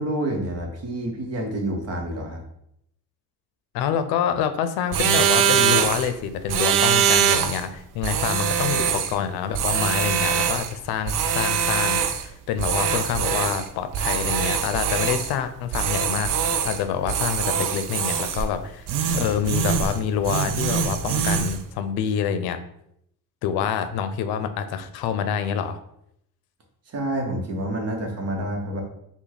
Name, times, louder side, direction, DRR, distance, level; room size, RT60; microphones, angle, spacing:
voice 1, 0.0-2.4 26.9-28.8, right 1 dB, 40° right, 2 dB, 1.1 m, -28 dB
voice 2, 3.7-18.8 19.1-22.6 23.4-25.8, left 8 dB, 85° left, 10 dB, 0.6 m, -27 dB
sound 1, 4.9-6.1 6.5-7.6 8.0-9.2 9.5-10.7 11.1-12.3 12.6-13.7 13.9-15.3 15.7-16.8 17.1-18.5 18.9-20.0 20.2-21.6, right 8 dB, 60° right, 0.5 m, -23 dB
5.7 x 2.3 x 4.0 m, 0.75 s
cardioid pair, 135°, 37 cm